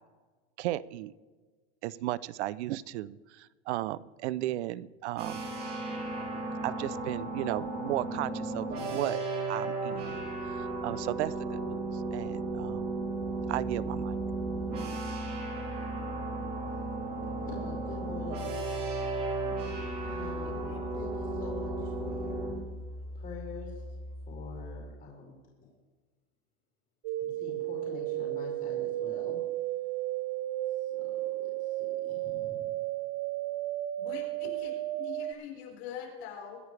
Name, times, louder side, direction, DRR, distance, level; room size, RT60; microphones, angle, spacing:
voice 1, 0.6-1.1 1.8-5.4 6.6-9.2 9.5-10.3 10.5-12.8 13.5-14.2, right 15 dB, 90° right, 20 dB, 0.6 m, -35 dB
sound 1, 5.2-22.5, right 3 dB, 30° right, 4.9 m, -35 dB
Musical instrument, 13.1-25.1, left 1 dB, 45° left, 2.0 m, -42 dB
voice 2, 17.2-18.6 18.9-19.0 19.7-22.6 23.1-23.8 24.3-25.3 27.2-29.4 30.8-31.0 31.4-32.7, left 4 dB, 30° left, -5 dB, 4.8 m, -45 dB
voice 3, 20.4-20.8 34.0-36.6, left 7 dB, 70° left, -1 dB, 4.8 m, -43 dB
sound 2, 27.0-35.3, right 16 dB, 45° right, 0.6 m, -34 dB
24.5 x 9.7 x 3.4 m, 1.4 s
supercardioid pair, 150°, 33 cm